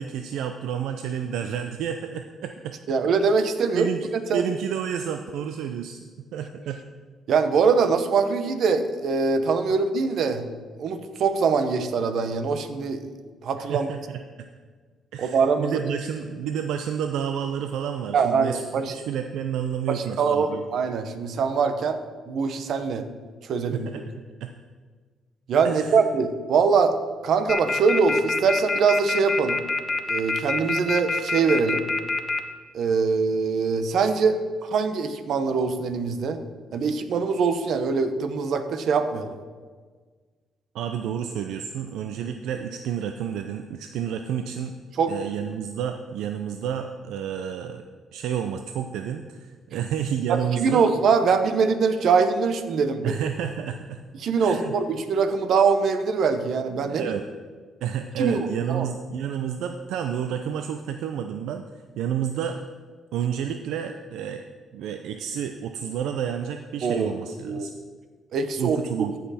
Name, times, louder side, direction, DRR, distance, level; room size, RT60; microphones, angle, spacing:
voice 1, 0.0-2.8 3.7-6.0 6.3-6.8 13.7-14.0 14.4-14.5 15.1-20.6 23.7-24.0 24.4-24.5 25.6-26.0 40.7-44.7 45.1-47.8 48.1-50.9 53.0-54.0 54.4-54.7 56.9-57.3 57.8-62.6 63.1-64.4 64.7-67.7 68.6-69.1, right 8 dB, 85° right, 6 dB, 0.4 m, -30 dB
voice 2, 2.9-3.9 4.3-4.4 7.3-10.5 10.8-13.0 13.4-13.9 15.2-15.8 18.1-18.9 19.9-22.0 22.3-23.0 23.4-23.9 25.5-26.9 27.2-29.6 30.1-31.8 32.7-36.4 36.7-39.4 45.0-45.1 50.3-53.1 54.2-57.1 58.2-58.9 66.8-67.1 67.4-67.7 68.3-68.8, right 5 dB, 65° right, 9 dB, 0.9 m, -23 dB
sound 1, 27.5-32.4, left 3 dB, 25° left, 1.1 m, -25 dB
14.5 x 5.8 x 4.2 m, 1.5 s
cardioid pair, 90°, 0 cm